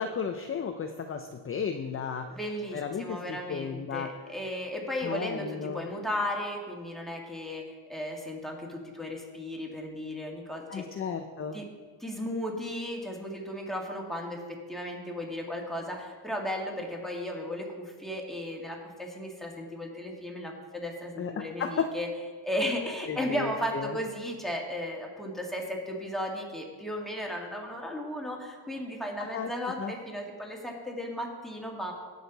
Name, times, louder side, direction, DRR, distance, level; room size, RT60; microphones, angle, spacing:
voice 1, 0.0-2.3 2.7-4.1 5.0-5.9 10.7-11.6 21.2-21.9 23.1-24.0 29.2-29.5 29.8-29.9, left 6 dB, 30° left, 6 dB, 0.6 m, -34 dB
voice 2, 2.3-10.9 11.5-11.7 12.0-22.1 22.4-31.9, left 1 dB, ahead, -1 dB, 2.0 m, -35 dB
17.5 x 6.5 x 4.0 m, 1.5 s
cardioid pair, 115°, 47 cm